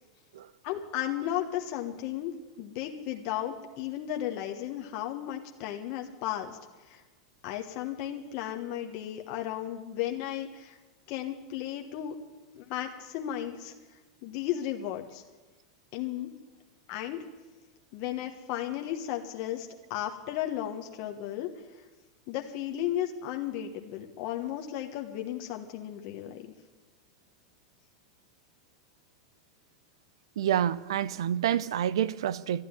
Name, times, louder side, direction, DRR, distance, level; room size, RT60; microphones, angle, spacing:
voice 1, 0.6-7.0 7.4-10.8 11.1-12.1 12.5-13.7 14.2-15.2 15.9-16.3 16.9-17.2 17.9-21.5 22.3-26.5, left 11 dB, 55° left, 1.2 m, -34 dB
voice 2, 30.4-32.6, right 10 dB, 80° right, 0.5 m, -28 dB
12.5 x 9.6 x 9.7 m
hypercardioid pair, 115°, 3 cm